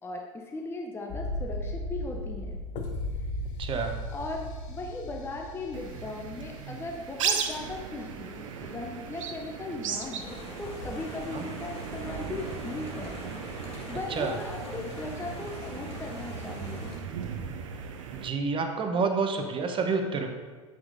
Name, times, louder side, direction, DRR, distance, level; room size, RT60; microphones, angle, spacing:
voice 1, 0.0-2.6 4.1-13.2 13.9-16.9, left 2 dB, 15° left, 1 dB, 0.6 m, -38 dB
sound 1, 1.1-7.9 8.2-8.3, left 1 dB, 50° left, 0.8 m, -36 dB
voice 2, 3.6-4.0 11.3-11.4 14.1-14.4 18.1-20.3, right 4 dB, 30° right, 5 dB, 0.9 m, -28 dB
sound 2, 5.7-18.3, right 6 dB, 65° right, 0.6 m, -37 dB
sound 3, 10.2-17.0, left 2 dB, 35° left, 1.6 m, -43 dB
7.4 x 5.8 x 2.6 m, 1.4 s
figure-of-eight pair, 75°, 18 cm